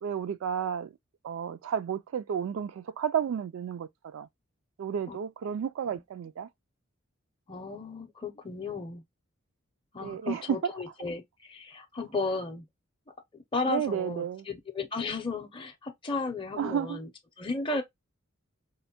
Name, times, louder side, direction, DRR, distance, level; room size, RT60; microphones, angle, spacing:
voice 1, 0.0-0.9 1.2-4.3 4.8-6.5 10.0-10.6 13.7-14.4 16.6-17.0, right 8 dB, 70° right, 0.3 m, -32 dB
voice 2, 7.5-9.0 9.9-12.6 13.5-17.1 17.4-17.8, left 3 dB, 25° left, 0.5 m, -34 dB
4.2 x 2.1 x 2.7 m
head